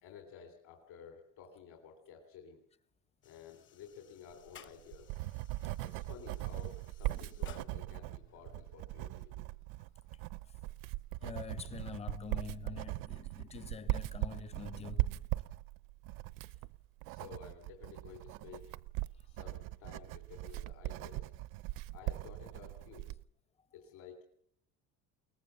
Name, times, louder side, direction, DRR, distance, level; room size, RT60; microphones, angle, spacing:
voice 1, 0.0-2.6 3.2-5.2 5.8-9.5 17.1-18.7 19.3-21.3 21.9-23.1 23.7-24.2, left 7 dB, 60° left, 3.4 m, -53 dB
sound 1, 3.2-12.5, left 9 dB, 35° left, 1.1 m, -61 dB
Writing, 4.5-23.2, right 18 dB, 80° right, 0.7 m, -40 dB
voice 2, 11.2-15.3 19.2-19.3, left 6 dB, 20° left, 0.7 m, -46 dB
22.5 x 19.0 x 7.1 m
cardioid pair, 160°, 33 cm